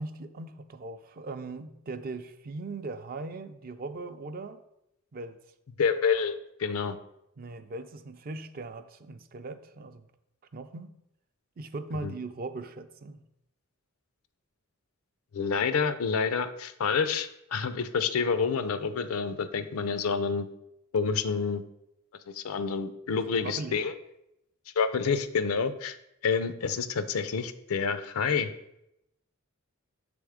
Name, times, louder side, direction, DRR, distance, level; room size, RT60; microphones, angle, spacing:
voice 1, 0.0-4.6 5.1-5.4 7.4-10.1 10.5-10.9 11.6-13.2 23.1-23.8, right 3 dB, 45° right, 10 dB, 0.4 m, -39 dB
voice 2, 5.8-7.0 12.0-12.1 15.3-20.5 20.9-21.6 22.3-23.9 24.8-26.0 26.2-28.5, left 5 dB, 85° left, 12 dB, 0.5 m, -28 dB
6.9 x 3.5 x 4.9 m, 0.83 s
head